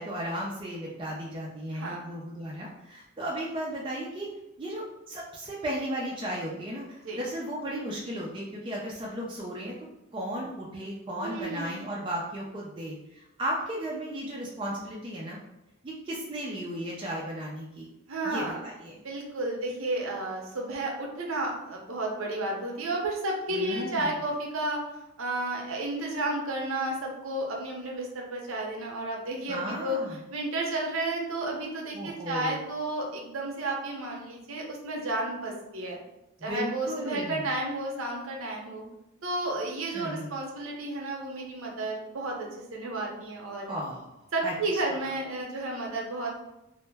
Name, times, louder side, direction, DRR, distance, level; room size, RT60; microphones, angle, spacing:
voice 1, 0.0-4.3 4.6-9.8 10.1-15.4 15.8-17.9 18.2-19.0 23.5-24.1 29.5-30.2 31.9-32.7 36.4-37.5 39.9-40.4 43.7-44.5, equal, 20° right, -4 dB, 0.3 m, -35 dB
voice 2, 1.7-2.0 7.0-7.2 11.2-11.9 18.1-18.7 18.9-24.8 25.2-30.0 30.3-36.0 36.4-38.8 39.2-43.7 44.3-46.3, right 2 dB, 65° right, -1 dB, 0.6 m, -32 dB
2.1 x 2.0 x 3.2 m, 0.89 s
head